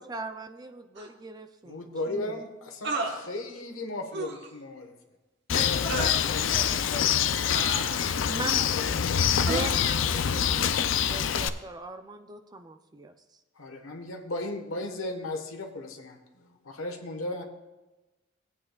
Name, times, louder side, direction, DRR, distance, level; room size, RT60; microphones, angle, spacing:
voice 1, 0.0-2.3 8.2-8.8 9.4-13.1, right 3 dB, 20° right, 8 dB, 0.4 m, -39 dB
sound 1, 1.0-1.1 2.8-3.2 4.1-4.5 5.9-6.2 7.5-8.3 9.5-9.7, right 3 dB, 55° right, 1.1 m, -32 dB
voice 2, 1.6-4.9 8.5-9.1 13.6-17.4, left 2 dB, 85° left, 4 dB, 1.2 m, -36 dB
Bird, 5.5-11.5, left 8 dB, 65° left, 0.4 m, -25 dB
voice 3, 5.5-8.5, left 2 dB, 35° left, 1 dB, 1.6 m, -40 dB
17.0 x 8.5 x 2.3 m, 1.1 s
head